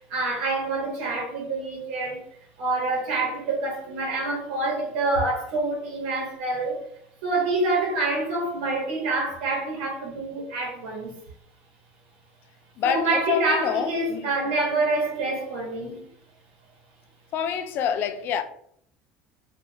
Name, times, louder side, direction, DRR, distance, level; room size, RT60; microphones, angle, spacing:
voice 1, 0.1-2.2 2.6-6.8 7.2-11.2 12.8-16.0, right 2 dB, 90° right, 1.0 m, -26 dB
voice 2, 12.8-14.3 17.3-18.4, left 8 dB, 50° left, 0.4 m, -27 dB
3.2 x 2.4 x 2.7 m
cardioid pair, 135°, 5 cm